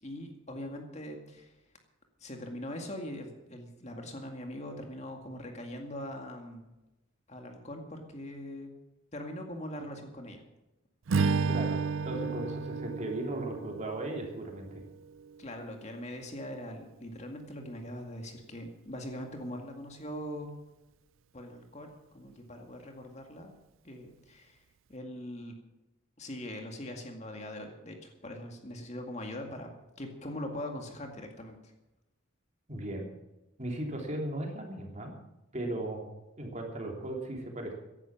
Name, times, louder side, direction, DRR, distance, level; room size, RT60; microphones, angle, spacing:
voice 1, 0.0-1.5 2.2-6.7 7.3-8.7 9.1-10.4 15.4-20.5 21.3-23.5 23.8-24.6 24.9-25.5 26.2-29.7 30.0-31.7, left 1 dB, 35° left, 3 dB, 2.2 m, -41 dB
Strum, 11.1-15.5, right 4 dB, 80° right, 0.5 m, -32 dB
voice 2, 12.0-14.8 32.7-33.1 33.6-35.1 35.5-36.1 36.4-37.7, right 1 dB, 35° right, 1 dB, 3.3 m, -36 dB
16.0 x 11.0 x 6.1 m, 0.99 s
head